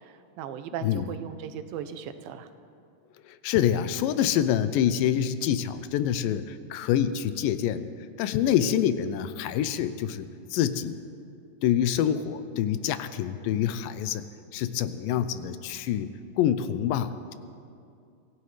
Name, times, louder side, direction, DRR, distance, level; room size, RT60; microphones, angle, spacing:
voice 1, 0.4-2.5, right 8 dB, 85° right, 10 dB, 2.5 m, -37 dB
voice 2, 3.3-7.9 8.2-11.0 11.6-14.3 14.5-17.3, left 10 dB, 85° left, 12 dB, 2.3 m, -26 dB
25.0 x 16.5 x 3.3 m, 2.4 s
omnidirectional pair, 4.0 m